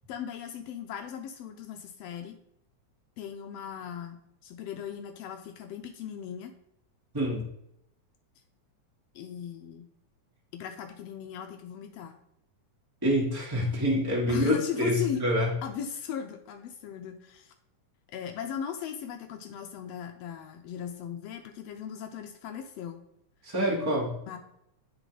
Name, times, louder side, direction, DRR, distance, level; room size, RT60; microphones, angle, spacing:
voice 1, 0.1-2.4 3.2-6.5 9.1-9.9 10.5-12.2 14.3-15.3 15.6-17.5 18.1-23.0 24.3-24.4, left 8 dB, 80° left, 6 dB, 1.5 m, -38 dB
voice 2, 13.0-15.5 23.4-24.1, equal, 15° right, -4 dB, 0.7 m, -26 dB
10.0 x 3.8 x 4.9 m, 0.78 s
omnidirectional pair, 3.5 m